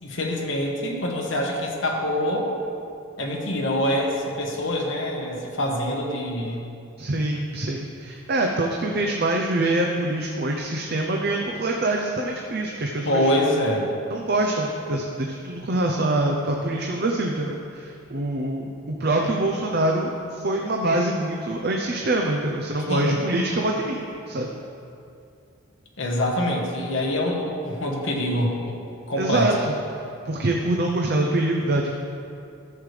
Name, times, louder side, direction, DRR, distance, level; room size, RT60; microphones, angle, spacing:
voice 1, 0.0-2.5 3.2-6.7 13.0-13.9 22.9-23.2 26.0-28.8 29.1-29.6, left 1 dB, 60° left, -1 dB, 1.3 m, -25 dB
voice 2, 7.0-13.3 14.1-24.5 29.2-29.7 30.2-31.9, right 2 dB, 45° right, 0 dB, 0.6 m, -25 dB
14.0 x 6.7 x 3.3 m, 2.5 s
head